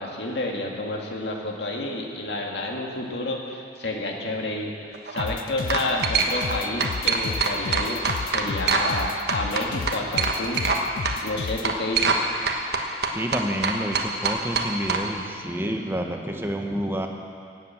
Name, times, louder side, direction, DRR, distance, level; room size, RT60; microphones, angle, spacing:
voice 1, 0.0-10.6 11.2-12.2, left 2 dB, 75° left, 0 dB, 2.1 m, -30 dB
sound 1, 4.9-5.2 5.7-6.5 6.8-9.0 9.3-10.8 11.0-11.2 11.6-12.2 12.5-15.0, right 4 dB, 65° right, 1.3 m, -24 dB
sound 2, 5.2-11.7, left 5 dB, 50° left, 0.3 m, -33 dB
voice 2, 13.1-17.1, equal, 15° right, 3 dB, 1.1 m, -29 dB
18.0 x 8.3 x 7.3 m, 2.5 s
head